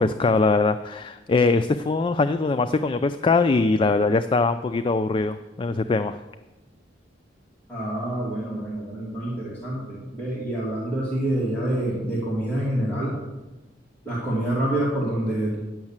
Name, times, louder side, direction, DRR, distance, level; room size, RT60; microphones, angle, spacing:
voice 1, 0.0-6.2, left 3 dB, 25° left, 10 dB, 0.3 m, -22 dB
voice 2, 7.7-13.1 14.0-15.6, right 1 dB, 10° left, -8 dB, 2.5 m, -27 dB
10.5 x 6.4 x 7.3 m, 1.1 s
head